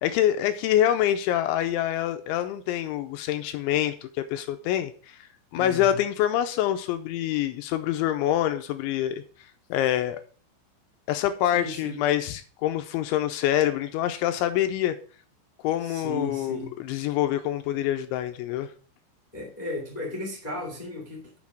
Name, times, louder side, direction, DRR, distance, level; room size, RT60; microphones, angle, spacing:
voice 1, 0.0-5.2 5.5-9.2 9.7-10.2 11.1-15.0 15.6-18.7, left 12 dB, 80° left, 2.8 m, -26 dB
voice 2, 5.5-6.0 11.5-12.0 15.8-16.7 19.3-21.4, left 1 dB, 25° left, 0.8 m, -35 dB
7.4 x 6.6 x 5.9 m
omnidirectional pair, 5.7 m